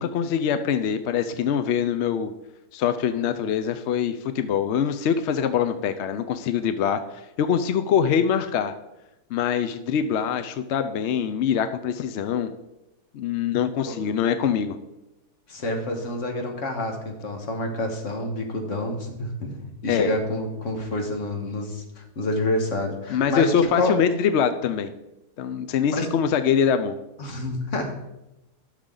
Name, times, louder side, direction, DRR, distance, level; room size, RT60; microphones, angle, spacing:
voice 1, 0.0-2.3 2.7-7.0 7.4-8.7 9.3-12.5 13.1-14.8 19.9-20.1 23.1-24.9 25.4-27.0, left 8 dB, 70° left, 10 dB, 0.6 m, -24 dB
voice 2, 15.5-23.9 25.9-26.1 27.2-27.9, left 1 dB, 50° left, 3 dB, 1.7 m, -28 dB
12.0 x 6.6 x 3.8 m, 0.93 s
omnidirectional pair, 1.7 m